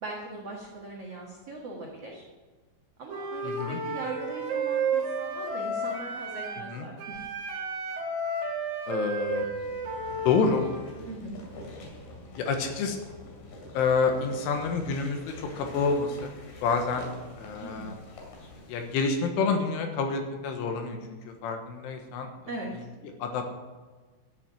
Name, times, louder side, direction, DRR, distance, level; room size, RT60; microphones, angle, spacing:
voice 1, 0.0-2.2 3.0-7.3 11.0-11.4 17.6-17.9 22.5-22.7, right 2 dB, 80° right, -3 dB, 1.3 m, -40 dB
Wind instrument woodwind instrument, 3.1-6.7 7.0-10.9, right 3 dB, 55° right, 2.3 m, -32 dB
voice 2, 3.4-3.8 6.7-6.9 8.9-9.5 10.1-10.6 12.4-13.0 13.7-16.3 16.6-17.1 17.4-18.0 18.7-22.3 22.7-22.8 23.2-23.5, left 5 dB, 80° left, 4 dB, 3.7 m, -28 dB
sound 1, 9.3-19.2, left 2 dB, 55° left, 4.0 m, -46 dB
13.0 x 7.5 x 7.8 m, 1.4 s
omnidirectional pair, 5.8 m